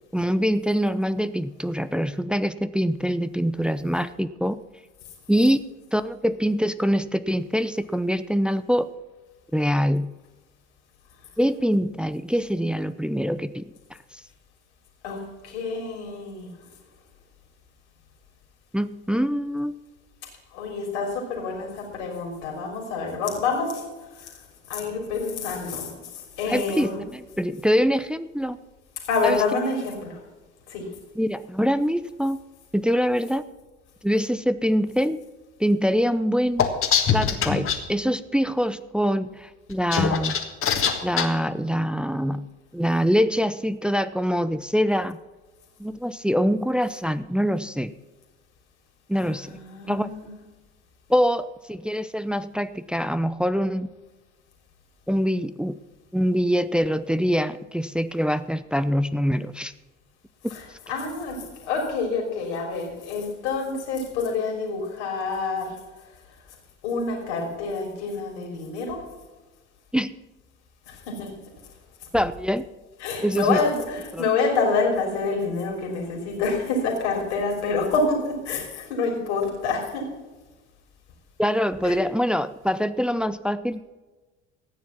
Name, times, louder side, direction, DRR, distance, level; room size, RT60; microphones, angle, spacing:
voice 1, 0.1-4.6 5.3-5.6 5.9-8.9 9.5-10.1 11.4-13.6 14.1-14.2 18.7-19.7 26.5-28.6 29.2-29.4 29.9-30.0 31.2-32.4 32.7-33.5 34.0-35.2 35.6-36.7 37.1-40.4 41.0-42.5 42.7-45.2 45.8-47.9 49.1-49.6 49.9-50.1 51.1-53.9 55.1-55.8 56.1-59.7 69.9-70.1 72.1-72.6 73.2-73.6 74.1-74.3 81.4-83.8, equal, 5° right, 13 dB, 0.5 m, -24 dB
voice 2, 15.0-16.5 20.5-24.3 24.7-27.0 29.0-30.2 30.7-30.9 49.1-50.3 60.5-65.8 66.8-69.0 70.9-71.3 73.0-80.1 81.8-82.0, left 4 dB, 70° left, 1 dB, 3.4 m, -27 dB
sound 1, 36.6-37.8 39.7-41.3, left 7 dB, 40° left, 1.8 m, -22 dB
14.5 x 9.5 x 5.8 m, 1.2 s
figure-of-eight pair, 60°, 34 cm